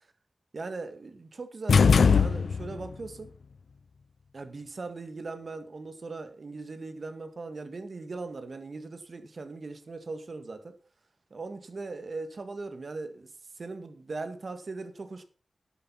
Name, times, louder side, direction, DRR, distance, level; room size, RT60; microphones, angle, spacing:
voice 1, 0.5-3.3 4.3-10.8 11.3-13.3 13.6-15.2, right 3 dB, 55° right, 2.0 m, -39 dB
sound 1, 1.7-2.9, left 5 dB, 85° left, 0.5 m, -20 dB
11.0 x 8.8 x 5.7 m
wide cardioid pair, 80°, 0 cm